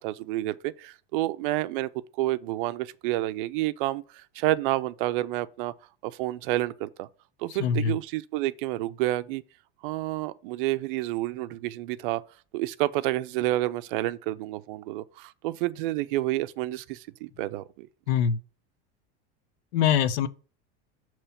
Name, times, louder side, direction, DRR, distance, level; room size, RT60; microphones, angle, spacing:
voice 1, 0.0-5.7 6.0-7.1 7.4-9.4 9.8-12.2 12.5-17.9, right 16 dB, 55° right, 0.4 m, -29 dB
voice 2, 7.6-7.9 18.1-18.4 19.7-20.3, left 8 dB, 80° left, 0.7 m, -23 dB
6.9 x 3.0 x 5.6 m
supercardioid pair, 175°, 32 cm